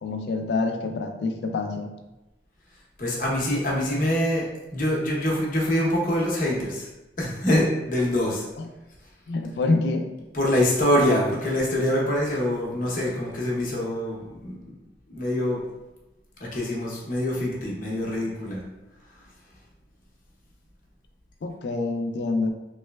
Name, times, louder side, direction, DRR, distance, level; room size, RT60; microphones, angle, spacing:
voice 1, 0.0-1.9 8.6-8.7 9.3-10.1 21.4-22.5, left 3 dB, 70° left, 5 dB, 0.4 m, -26 dB
voice 2, 3.0-6.9 7.2-8.4 10.3-14.7 15.1-15.6 16.4-18.6, left 1 dB, 50° left, -4 dB, 0.8 m, -25 dB
3.1 x 3.0 x 2.2 m, 1.0 s
head